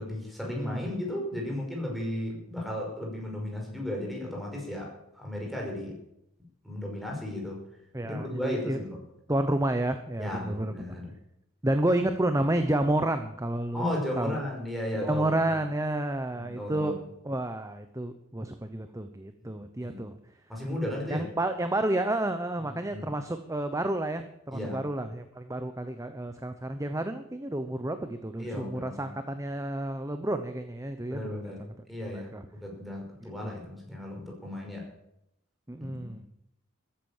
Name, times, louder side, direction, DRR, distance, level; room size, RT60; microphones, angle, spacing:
voice 1, 0.0-6.0 6.6-7.7 8.0-9.0 10.2-11.1 13.7-15.4 16.3-16.9 19.8-20.0 20.5-21.3 22.9-23.1 24.5-24.8 28.4-29.1 31.1-34.9 35.8-36.2, left 1 dB, ahead, -1 dB, 5.5 m, -35 dB
voice 2, 0.6-0.9 7.9-8.8 9.3-10.7 11.6-13.8 14.2-14.4 15.0-16.9 17.2-20.2 21.1-31.5 32.1-32.4 33.2-33.6 35.7-36.2, right 1 dB, 15° right, 8 dB, 0.9 m, -30 dB
14.0 x 10.0 x 7.4 m, 0.80 s
head